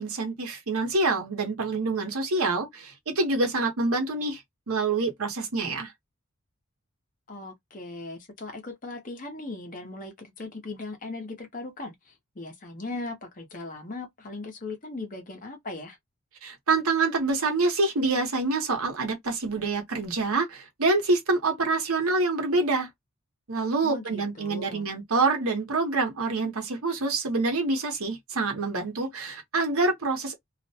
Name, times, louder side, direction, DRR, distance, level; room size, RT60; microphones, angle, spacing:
voice 1, 0.0-4.4 4.7-5.9 16.4-22.9 23.5-30.4, right 3 dB, 75° right, 0.9 m, -26 dB
voice 2, 7.3-16.0 23.8-24.9, left 2 dB, 35° left, 0.8 m, -38 dB
2.4 x 2.1 x 2.7 m
head